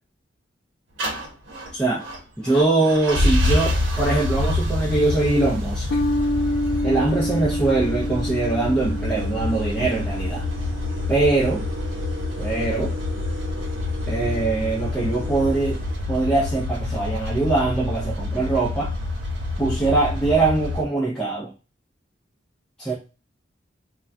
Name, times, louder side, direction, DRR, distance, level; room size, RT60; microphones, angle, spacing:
sound 1, 1.0-20.8, left 1 dB, 80° right, 0.9 m, -27 dB
voice 1, 1.7-2.0 2.4-5.9 6.8-10.5 11.1-11.6 12.4-12.9 14.1-15.8 16.1-18.9 19.6-21.5 22.8-22.9, right 2 dB, 5° left, -7 dB, 0.5 m, -22 dB
sound 2, 5.9-12.6, left 1 dB, 75° left, 0.3 m, -29 dB
sound 3, 6.5-6.6 7.0-16.8, left 2 dB, 25° right, 0.9 m, -39 dB
2.2 x 2.2 x 3.6 m, 0.31 s
head